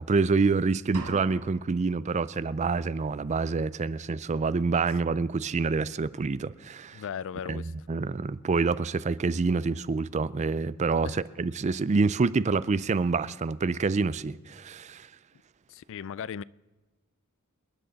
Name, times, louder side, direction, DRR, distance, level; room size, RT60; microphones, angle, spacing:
voice 1, 0.0-7.0 7.5-15.1, right 4 dB, 30° right, 0.4 m, -27 dB
sound 1, 0.9-1.9, right 3 dB, 85° right, 1.8 m, -40 dB
voice 2, 6.9-7.7 11.0-11.2 15.7-16.4, left 7 dB, 60° left, 0.3 m, -37 dB
26.5 x 10.5 x 4.0 m
head